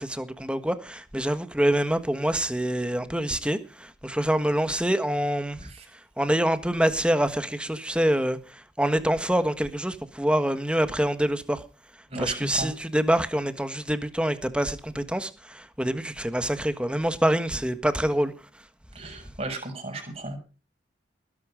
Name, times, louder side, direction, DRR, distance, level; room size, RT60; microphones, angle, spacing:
voice 1, 0.0-11.6 12.2-18.3, right 1 dB, 5° right, 1.5 m, -26 dB
voice 2, 12.1-12.7 18.9-20.4, right 2 dB, 35° right, 6.9 m, -34 dB
20.5 x 11.0 x 5.1 m
head